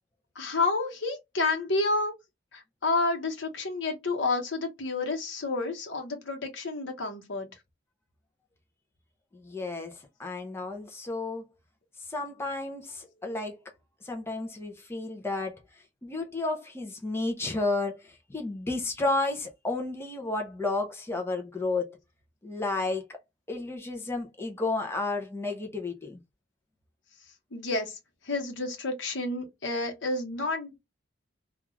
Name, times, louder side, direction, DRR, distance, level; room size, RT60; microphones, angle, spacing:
voice 1, 0.3-2.1 2.5-7.5 27.5-28.0 28.2-30.8, left 3 dB, 75° left, 1.0 m, -30 dB
voice 2, 9.3-11.4 12.1-13.6 14.0-15.6 16.0-22.0 22.4-23.2 23.5-26.2, left 2 dB, 15° left, 0.5 m, -32 dB
2.4 x 2.3 x 3.0 m
head